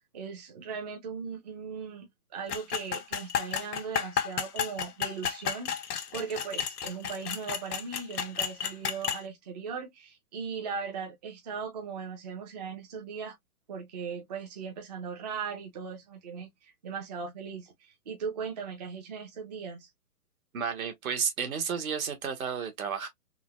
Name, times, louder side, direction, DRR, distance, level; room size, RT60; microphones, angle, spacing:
voice 1, 0.1-13.3 13.7-19.9, right 6 dB, 30° right, 0.5 m, -38 dB
sound 1, 2.5-9.2, left 8 dB, 85° left, 0.8 m, -32 dB
voice 2, 20.5-23.1, right 6 dB, 65° right, 1.2 m, -32 dB
3.8 x 2.0 x 2.2 m
hypercardioid pair, 150°, 45 cm